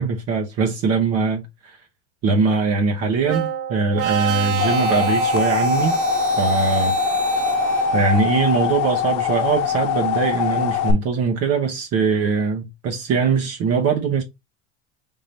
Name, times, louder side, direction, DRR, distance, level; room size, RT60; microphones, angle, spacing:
voice 1, 0.0-1.8 2.2-6.0 6.4-7.0 7.9-14.2, right 5 dB, 45° right, 1.0 m, -21 dB
sound 1, 3.2-8.3, right 8 dB, 65° right, 1.3 m, -25 dB
sound 2, 4.2-10.9, left 11 dB, 75° left, 0.8 m, -23 dB
4.7 x 3.7 x 2.7 m
cardioid pair, 130°, 34 cm